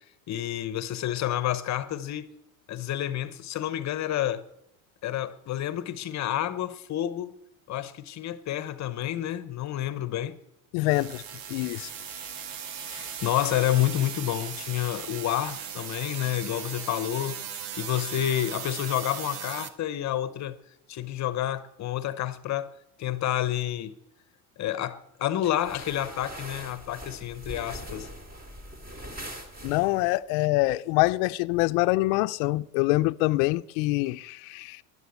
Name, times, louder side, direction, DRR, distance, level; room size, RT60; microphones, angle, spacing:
voice 1, 0.3-2.3 2.7-4.4 5.0-7.3 7.7-10.3 12.9-20.5 20.9-22.7 23.0-24.0 24.6-28.1, left 12 dB, 40° left, 0.9 m, -29 dB
voice 2, 10.7-11.2 11.5-11.9 29.6-34.8, left 20 dB, 70° left, 0.7 m, -25 dB
sound 1, 10.9-19.7, right 8 dB, 70° right, 1.6 m, -38 dB
sound 2, 25.5-30.2, equal, 20° right, 2.7 m, -42 dB
12.5 x 11.5 x 8.4 m
supercardioid pair, 125°, 42 cm